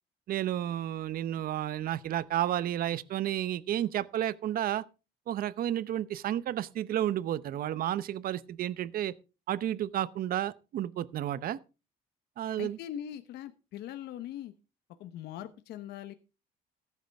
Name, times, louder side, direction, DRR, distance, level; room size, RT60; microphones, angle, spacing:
voice 1, 0.3-4.9 5.3-9.1 9.5-11.6 12.4-12.8, right 12 dB, 60° right, 0.8 m, -31 dB
voice 2, 12.6-14.5 15.0-16.1, left 11 dB, 80° left, 1.1 m, -41 dB
15.0 x 11.0 x 3.5 m
cardioid pair, 110°, 17 cm